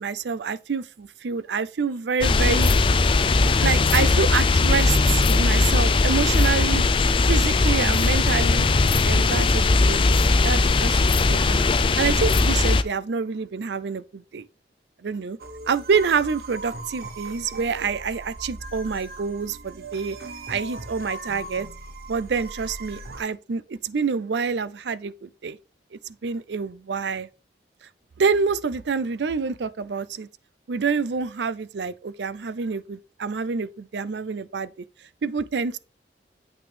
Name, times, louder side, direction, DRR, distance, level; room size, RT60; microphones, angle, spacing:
voice 1, 0.0-2.7 3.6-6.8 7.2-8.6 9.0-11.7 12.0-14.4 15.0-15.4 15.7-20.2 20.5-21.7 22.1-25.6 25.9-27.3 28.2-30.3 30.7-34.7 35.2-35.8, right 5 dB, 80° right, 0.5 m, -27 dB
sound 1, 2.2-12.8, left 3 dB, 30° left, 0.4 m, -19 dB
sound 2, 15.4-23.2, right 2 dB, 60° right, 1.2 m, -38 dB
8.1 x 5.9 x 3.4 m
head